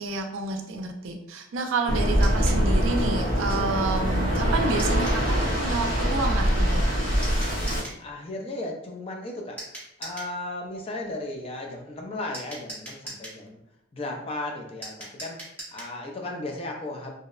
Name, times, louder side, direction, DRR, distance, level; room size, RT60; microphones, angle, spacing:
voice 1, 0.0-7.0, right 3 dB, 85° right, 4 dB, 0.4 m, -29 dB
Waves surf, 1.9-7.8, equal, 70° left, 1.3 m, -23 dB
sound 1, 2.2-2.6 4.8-5.2 7.2-8.0 9.6-10.3 12.3-13.4 14.8-15.9, right 1 dB, 10° left, 0.8 m, -40 dB
voice 2, 8.0-9.6 10.0-13.6 13.9-15.4 15.7-17.1, left 2 dB, 30° left, 1 dB, 0.4 m, -35 dB
2.7 x 2.0 x 2.3 m, 0.79 s
head